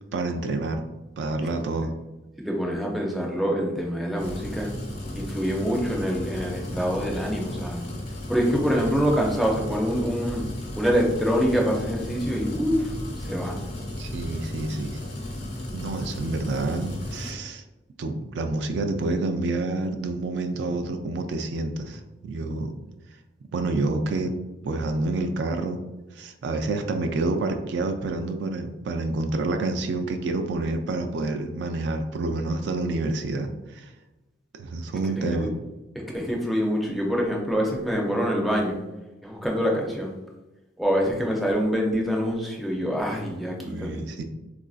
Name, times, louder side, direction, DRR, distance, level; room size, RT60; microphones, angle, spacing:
voice 1, 0.1-0.8 1.2-1.9 14.0-15.0 15.7-17.6 18.0-22.7 23.5-24.3 24.6-25.8 26.1-33.9 34.6-35.5 43.5-44.2, right 2 dB, 65° right, 6 dB, 0.3 m, -28 dB
voice 2, 2.4-4.7 5.1-7.8 8.3-10.5 10.8-13.6 35.2-35.5 36.1-38.8 39.2-40.1 40.8-44.0, equal, ahead, -2 dB, 0.4 m, -25 dB
sound 1, 4.2-17.3, left 1 dB, 65° left, 0.9 m, -34 dB
3.7 x 2.5 x 2.3 m, 1.0 s
head